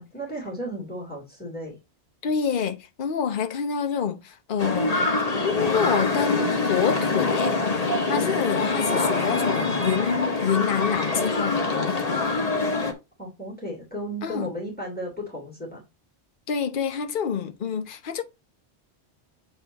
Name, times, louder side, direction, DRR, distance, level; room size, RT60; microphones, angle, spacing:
voice 1, 0.0-1.8 9.0-9.4 13.2-15.8, equal, 10° left, 2.9 m, -35 dB
voice 2, 2.2-5.0 5.4-7.6 8.1-12.3 14.2-14.5 16.5-18.2, left 7 dB, 50° left, 0.9 m, -27 dB
sound 1, 4.6-12.9, left 3 dB, 35° left, 1.3 m, -25 dB
7.8 x 3.9 x 3.9 m
omnidirectional pair, 1.2 m